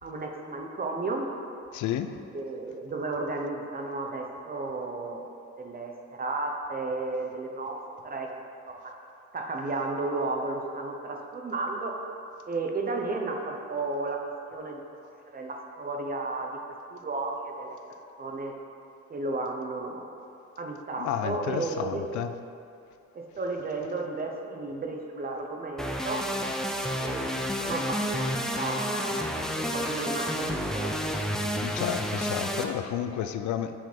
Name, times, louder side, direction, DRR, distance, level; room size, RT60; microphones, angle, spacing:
voice 1, 0.0-1.3 2.3-5.3 5.6-8.3 8.7-8.9 9.3-11.9 12.5-14.2 14.5-14.8 15.3-16.6 16.9-17.8 18.2-18.5 19.1-20.1 20.6-22.0 23.1-26.2 27.0-29.2 29.5-31.3 33.2-33.3, right 3 dB, 30° right, 2 dB, 0.8 m, -33 dB
voice 2, 1.7-2.1 21.0-22.3 31.6-33.7, left 10 dB, 75° left, 9 dB, 0.5 m, -31 dB
sound 1, 25.8-32.6, equal, ahead, 0.4 m, -30 dB
7.2 x 3.8 x 4.5 m, 2.6 s
cardioid pair, 90°, 30 cm